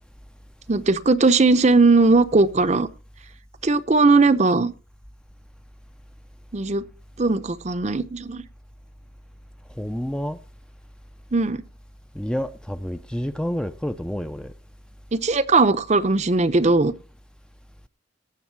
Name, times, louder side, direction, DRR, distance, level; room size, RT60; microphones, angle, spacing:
voice 1, 0.7-2.9 3.6-4.7 6.5-6.8 7.2-8.4 11.3-11.6 15.1-16.9, right 3 dB, 35° right, 0.7 m, -18 dB
voice 2, 9.8-10.4 12.1-14.5, equal, 5° left, 0.5 m, -29 dB
18.5 x 6.5 x 4.6 m
head